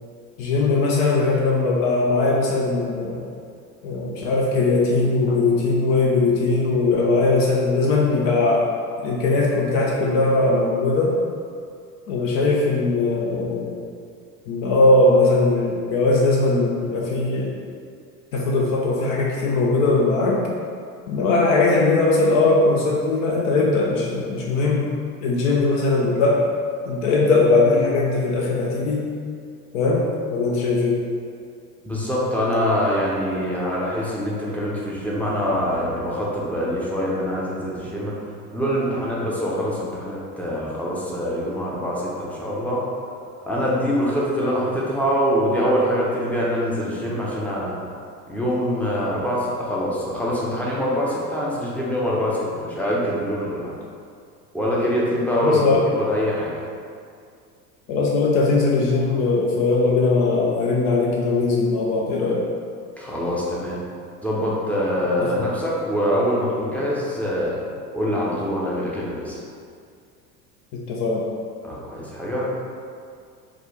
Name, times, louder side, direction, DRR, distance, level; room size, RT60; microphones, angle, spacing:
voice 1, 0.4-3.2 3.8-8.7 9.0-11.2 12.1-13.8 14.5-17.5 18.3-20.4 21.1-24.9 25.2-26.5 26.9-29.1 29.7-31.0 55.4-55.9 57.9-62.5 65.2-65.3 70.7-71.2, left 3 dB, 55° left, -2 dB, 0.6 m, -20 dB
voice 2, 31.8-38.1 38.5-42.8 43.5-47.8 48.3-53.7 54.5-56.5 63.0-63.8 64.2-67.6 67.9-69.4 71.6-72.5, equal, 5° left, -6 dB, 0.6 m, -24 dB
3.9 x 2.3 x 3.1 m, 2.3 s
figure-of-eight pair, 70°, 48 cm